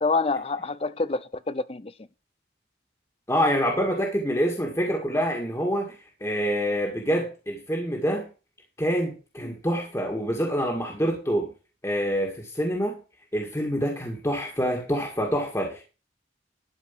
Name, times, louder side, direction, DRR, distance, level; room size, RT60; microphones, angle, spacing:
voice 1, 0.0-1.9 9.4-9.6, left 3 dB, 35° left, 0.6 m, -27 dB
voice 2, 3.3-6.0 6.2-8.3 8.8-11.5 11.8-13.0 13.3-15.8, equal, 15° left, 1.9 m, -26 dB
12.0 x 4.8 x 7.4 m
head